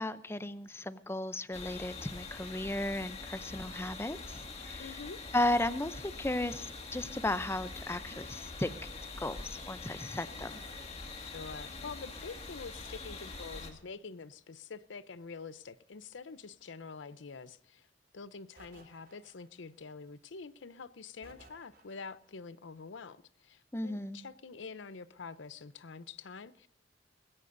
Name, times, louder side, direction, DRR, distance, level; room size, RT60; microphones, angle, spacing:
voice 1, 0.0-5.0 5.3-8.7 9.2-10.5 23.7-24.2, left 1 dB, 15° left, 0.5 m, -35 dB
sound 1, 1.5-13.7, left 3 dB, 35° left, 2.0 m, -44 dB
voice 2, 4.8-5.2 11.2-17.9 18.1-26.7, left 4 dB, 85° left, 0.7 m, -46 dB
sound 2, 18.6-19.8 21.2-22.3, right 2 dB, 55° right, 4.8 m, -58 dB
20.5 x 16.0 x 2.6 m
head